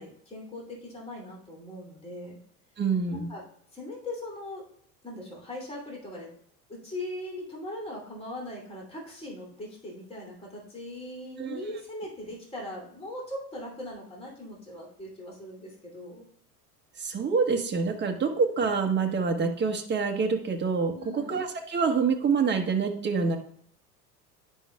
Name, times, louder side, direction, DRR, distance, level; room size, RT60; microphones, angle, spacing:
voice 1, 0.0-2.4 3.1-3.4 3.7-4.7 5.0-6.3 6.7-16.3 20.9-21.4, left 1 dB, 10° left, -4 dB, 2.8 m, -40 dB
voice 2, 2.8-3.3 11.4-11.6 17.0-23.4, right 5 dB, 20° right, 3 dB, 1.1 m, -26 dB
9.8 x 5.5 x 2.3 m, 0.64 s
hypercardioid pair, 80°, 48 cm